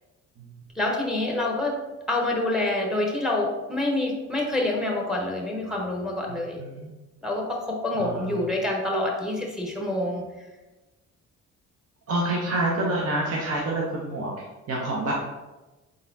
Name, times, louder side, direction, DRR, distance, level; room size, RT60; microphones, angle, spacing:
voice 1, 0.7-1.7 2.1-6.6 7.2-10.2, left 2 dB, ahead, 0 dB, 0.8 m, -27 dB
voice 2, 6.3-6.9 7.9-8.5 12.1-14.3 14.7-15.1, right 1 dB, 55° right, -3 dB, 0.8 m, -28 dB
4.0 x 3.6 x 2.7 m, 1.1 s
cardioid pair, 90°, 30 cm